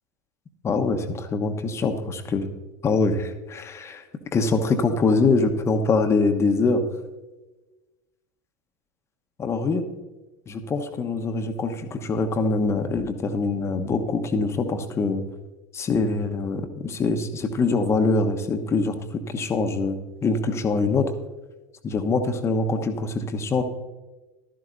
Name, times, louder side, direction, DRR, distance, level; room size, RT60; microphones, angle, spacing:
voice 1, 0.6-2.5 2.8-4.0 4.3-6.9 9.4-9.9 10.5-15.2 15.7-20.0 20.2-21.1 21.8-23.6, left 3 dB, 25° left, 6 dB, 1.1 m, -24 dB
15.0 x 12.5 x 2.7 m, 1.1 s
figure-of-eight pair, 75°, 10 cm